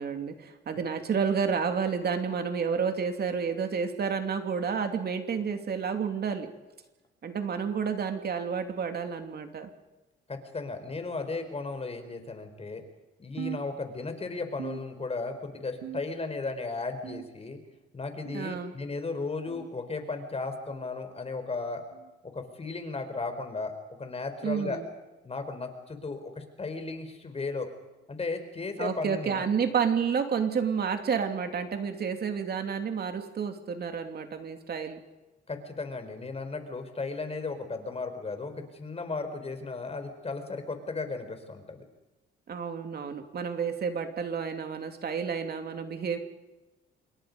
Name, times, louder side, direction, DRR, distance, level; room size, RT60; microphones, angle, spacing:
voice 1, 0.0-6.5 7.2-9.7 18.3-18.7 24.4-24.8 28.8-35.0 42.5-46.2, right 6 dB, 55° right, 6 dB, 2.8 m, -30 dB
voice 2, 10.3-12.8 13.2-17.6 17.9-21.8 22.2-23.7 24.0-24.8 25.2-27.7 28.1-29.5 35.5-41.8, left 3 dB, 30° left, 8 dB, 4.3 m, -35 dB
sound 1, 13.4-14.2 14.6-15.4 15.8-16.4 17.0-17.6 18.3-18.6 19.5-19.7 20.7-20.9 21.9-22.1 23.1-23.3 24.4-24.5 25.6-25.8 26.8-26.9 28.0-28.1, right 11 dB, 80° right, 2.2 m, -43 dB
27.0 x 23.0 x 5.4 m, 1.1 s
cardioid pair, 90°, 20 cm